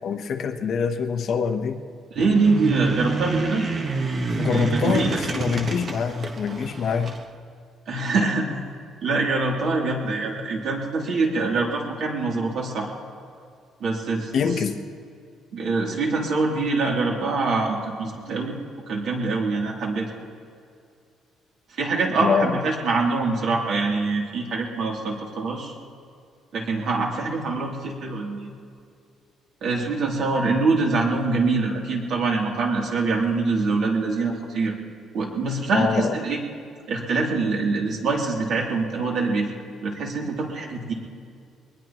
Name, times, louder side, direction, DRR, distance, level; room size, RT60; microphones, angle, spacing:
voice 1, 0.0-1.8 4.4-7.1 14.3-14.7 22.2-22.6 35.7-36.2, left 6 dB, 45° left, 6 dB, 0.9 m, -25 dB
voice 2, 2.1-3.7 4.5-5.2 7.9-8.5 9.0-12.9 13.8-14.3 15.5-18.6 18.9-20.1 21.7-25.7 26.5-28.5 29.6-34.7 35.1-36.4 36.9-39.5 39.8-40.9, right 3 dB, 50° right, -1 dB, 3.0 m, -24 dB
sound 1, 2.2-7.2, right 3 dB, 30° right, 1.1 m, -28 dB
23.0 x 20.0 x 3.0 m, 2.3 s
cardioid pair, 175°, 0 cm